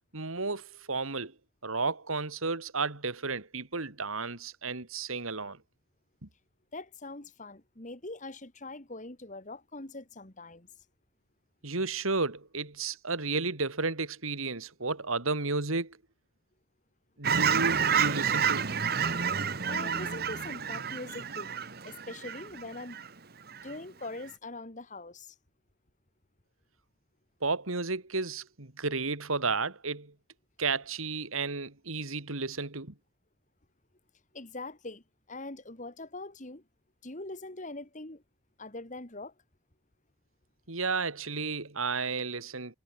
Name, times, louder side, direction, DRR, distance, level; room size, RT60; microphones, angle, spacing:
voice 1, 0.1-1.3 1.6-5.6 6.2-6.3 11.6-16.0 17.2-18.7 27.4-30.1 30.6-32.9 40.7-42.8, right 4 dB, 80° right, 2.6 m, -32 dB
voice 2, 6.7-10.7 19.7-21.5 21.8-23.0 23.5-25.3 34.3-35.0 35.3-36.6 37.0-38.2 38.6-39.3, left 2 dB, 35° left, 2.2 m, -42 dB
Fowl / Chirp tweet, 17.2-23.1 23.5-23.7, right 7 dB, 45° right, 1.6 m, -29 dB
head